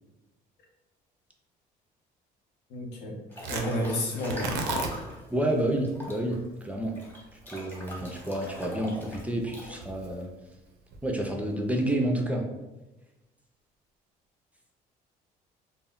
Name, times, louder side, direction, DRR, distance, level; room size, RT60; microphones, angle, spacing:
voice 1, 2.7-3.2 3.5-4.5, equal, 85° left, 0 dB, 0.7 m, -30 dB
Breathing / Bathtub (filling or washing) / Splash splatter, 3.3-5.2 5.8-9.8, left 1 dB, 10° left, 0.7 m, -41 dB
Tearing, 3.4-11.8, right 3 dB, 85° right, 0.4 m, -39 dB
voice 2, 5.3-7.0 7.5-10.3 11.0-12.5, right 1 dB, 10° right, 0 dB, 0.3 m, -29 dB
2.1 x 2.0 x 3.5 m, 1.1 s
cardioid pair, 110°, 17 cm